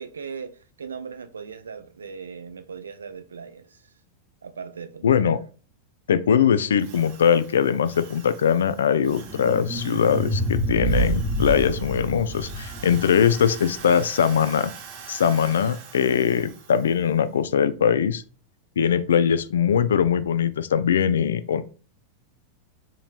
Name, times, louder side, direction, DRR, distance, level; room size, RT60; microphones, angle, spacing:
voice 1, 0.0-3.9 4.4-5.4, right 6 dB, 70° right, 0.4 m, -39 dB
voice 2, 5.0-5.4 6.1-14.7 15.1-18.2 18.8-21.6, left 8 dB, 65° left, 0.3 m, -21 dB
Drill, 6.8-17.2, right 7 dB, 45° right, 0.9 m, -44 dB
sound 1, 9.1-14.2, right 1 dB, 5° right, 0.7 m, -28 dB
3.8 x 3.1 x 2.4 m
figure-of-eight pair, 90°, 0 cm